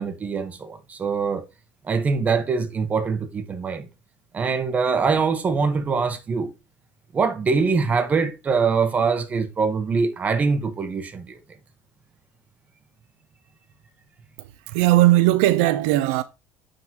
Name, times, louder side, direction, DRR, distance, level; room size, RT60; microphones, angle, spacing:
voice 1, 0.0-1.4 1.8-3.9 4.3-6.5 7.1-11.4, right 5 dB, 25° right, 1.1 m, -23 dB
voice 2, 14.7-16.2, right 16 dB, 90° right, 0.6 m, -18 dB
9.6 x 3.9 x 3.0 m
cardioid pair, 130°, 6 cm